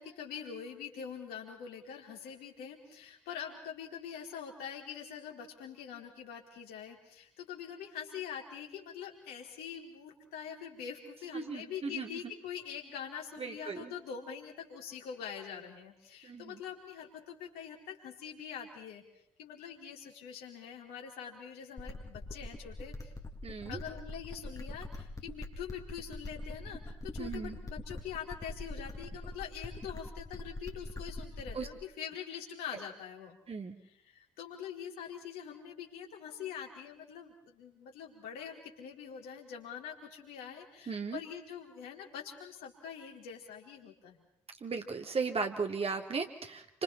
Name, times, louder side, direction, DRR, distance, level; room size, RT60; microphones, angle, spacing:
voice 1, 0.0-19.0 19.4-23.1 23.7-33.4 33.8-44.2, left 8 dB, 65° left, 0 dB, 4.2 m, -44 dB
voice 2, 11.3-12.1 13.4-13.9 16.2-16.5 23.4-23.8 27.2-27.5 31.5-31.7 33.5-33.8 40.9-41.2 44.6-46.8, right 4 dB, 35° right, 4 dB, 2.9 m, -36 dB
sound 1, 21.8-31.8, left 2 dB, 20° left, 2.8 m, -43 dB
30.0 x 25.5 x 4.3 m, 0.74 s
figure-of-eight pair, 40°, 17 cm